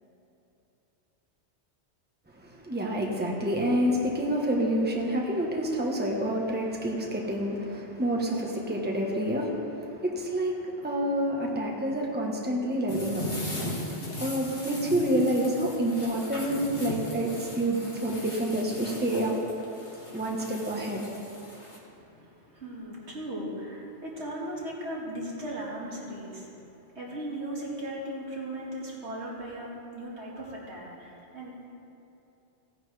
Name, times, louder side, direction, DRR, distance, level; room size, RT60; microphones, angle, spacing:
voice 1, 2.3-13.3 14.2-19.3 20.1-21.0, right 1 dB, 10° right, -1 dB, 1.2 m, -28 dB
sound 1, 12.9-21.8, left 1 dB, 55° left, 2.2 m, -38 dB
voice 2, 21.9-31.7, right 1 dB, 75° right, -5 dB, 2.4 m, -38 dB
17.5 x 10.0 x 3.4 m, 2.8 s
omnidirectional pair, 1.2 m